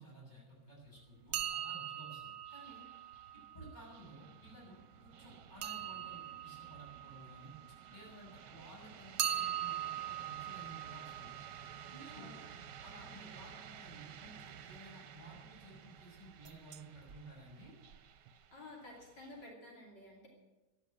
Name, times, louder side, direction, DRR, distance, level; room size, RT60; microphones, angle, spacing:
voice 1, 0.0-2.8 3.3-11.4 11.9-12.4 12.8-17.7, right 2 dB, 25° left, -3 dB, 6.9 m, -55 dB
sound 1, 0.5-19.5, right 8 dB, 80° right, 1.5 m, -55 dB
sound 2, 1.3-4.0 5.6-8.3 9.2-13.0 16.4-16.8 17.1-17.2 17.9-18.0 18.3-18.4, right 10 dB, 65° right, 1.0 m, -42 dB
voice 2, 13.0-13.3 18.5-20.3, left 2 dB, 80° left, -2 dB, 3.5 m, -53 dB
13.5 x 11.0 x 8.8 m, 1.1 s
omnidirectional pair, 1.8 m